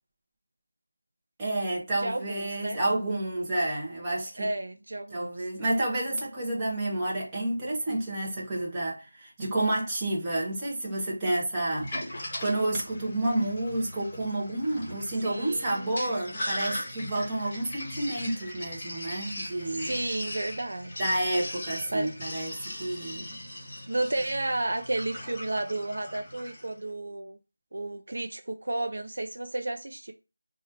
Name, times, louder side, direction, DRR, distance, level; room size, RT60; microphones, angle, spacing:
voice 1, 1.4-4.5 5.1-19.9 21.0-23.3, right 1 dB, 15° right, 0.9 m, -30 dB
voice 2, 2.0-2.8 4.4-5.5 15.2-16.2 19.6-21.1 21.9-22.1 23.9-27.4 27.7-30.1, right 2 dB, 65° right, 0.6 m, -32 dB
Sink (filling or washing), 11.7-26.7, left 1 dB, 25° left, 1.2 m, -39 dB
3.0 x 2.4 x 4.3 m
figure-of-eight pair, 170°, 0 cm